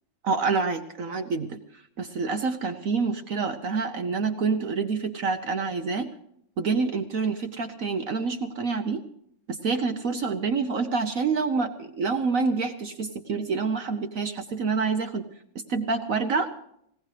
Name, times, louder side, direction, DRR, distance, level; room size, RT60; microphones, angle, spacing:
voice 1, 0.2-1.6 2.0-6.1 6.6-9.0 9.5-15.2 15.7-16.5, right 4 dB, 55° right, 7 dB, 1.0 m, -27 dB
21.0 x 17.5 x 3.3 m, 0.71 s
omnidirectional pair, 2.1 m